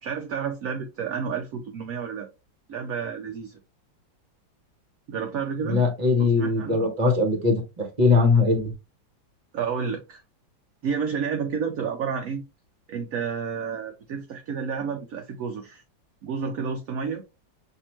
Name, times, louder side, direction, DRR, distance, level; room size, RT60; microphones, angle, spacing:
voice 1, 0.0-2.3 2.7-3.6 5.1-5.8 6.2-6.9 9.5-10.2 10.8-12.4 12.9-15.8 16.2-17.2, right 6 dB, 70° right, 0.8 m, -30 dB
voice 2, 5.6-8.7, left 3 dB, 35° right, 0.8 m, -21 dB
5.7 x 2.7 x 2.9 m
omnidirectional pair, 2.1 m